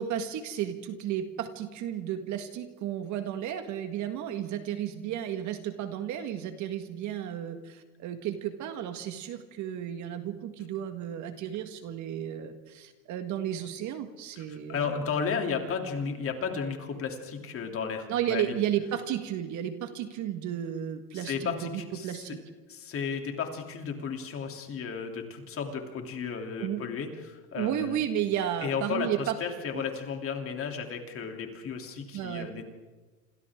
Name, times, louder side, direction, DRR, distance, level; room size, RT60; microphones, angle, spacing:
voice 1, 0.0-15.1 18.1-22.4 26.6-26.8 27.5-29.3 29.7-29.8 32.1-32.5, right 10 dB, 40° right, 7 dB, 1.7 m, -33 dB
voice 2, 14.4-18.5 21.1-22.3 22.7-28.0 28.6-29.1 29.4-32.6, left 6 dB, 30° left, 3 dB, 3.1 m, -34 dB
27.5 x 27.5 x 3.7 m, 1.3 s
supercardioid pair, 130°, 46 cm